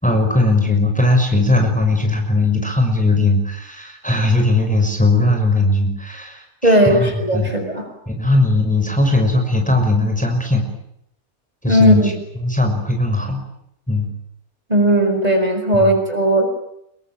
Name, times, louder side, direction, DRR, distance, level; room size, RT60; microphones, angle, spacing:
voice 1, 0.0-7.5 8.1-10.6 11.6-12.1 12.4-13.4 13.9-14.1 15.7-15.9, left 2 dB, 5° left, 3 dB, 5.9 m, -18 dB
voice 2, 6.6-7.8 11.7-12.1 14.7-16.5, equal, 25° right, 4 dB, 6.4 m, -16 dB
27.5 x 23.5 x 9.1 m, 0.76 s
omnidirectional pair, 1.6 m